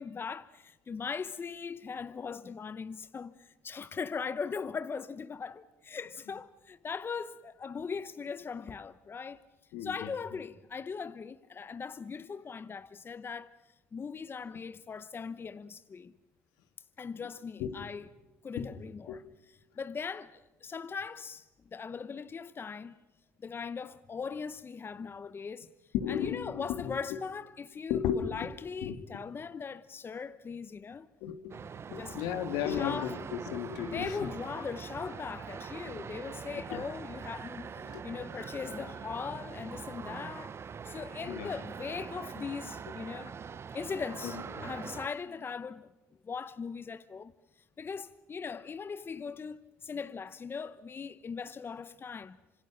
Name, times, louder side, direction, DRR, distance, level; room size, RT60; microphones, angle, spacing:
voice 1, 0.0-9.4 9.8-13.6 13.9-16.1 17.0-18.1 18.4-23.0 23.4-25.7 26.1-31.1 31.9-32.2 32.6-33.2 33.9-40.5 40.8-43.4 43.7-45.9 46.2-47.3 47.8-52.4, left 5 dB, 35° left, 0.9 m, -40 dB
voice 2, 9.7-10.1 17.6-17.8 19.1-19.2 25.9-27.2 27.9-28.5 28.8-29.0 31.2-31.6 31.9-34.3 36.7-36.8 37.9-38.0 41.3-41.5 44.2-44.3 44.6-44.7, left 9 dB, 75° left, 2.0 m, -34 dB
sound 1, 31.5-45.1, right 6 dB, 40° right, 1.0 m, -43 dB
28.5 x 26.0 x 5.8 m
hypercardioid pair, 65°, 7 cm